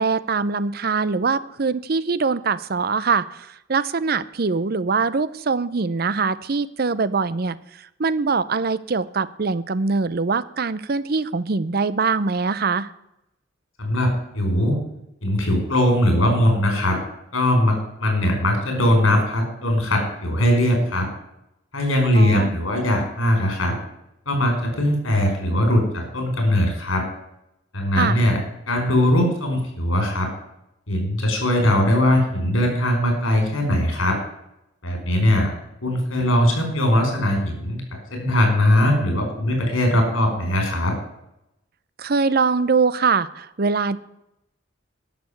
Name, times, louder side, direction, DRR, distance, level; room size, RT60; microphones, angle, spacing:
voice 1, 0.0-7.6 8.0-12.9 22.1-22.6 28.0-28.2 42.0-44.0, right 4 dB, 50° right, 16 dB, 0.6 m, -23 dB
voice 2, 13.8-14.7 15.2-17.0 17.3-21.1 21.7-23.8 24.2-27.0 27.7-28.4 28.7-30.3 30.9-34.2 34.8-35.5 35.8-40.9, left 1 dB, 85° left, 3 dB, 5.0 m, -20 dB
11.5 x 6.8 x 9.5 m, 0.84 s
head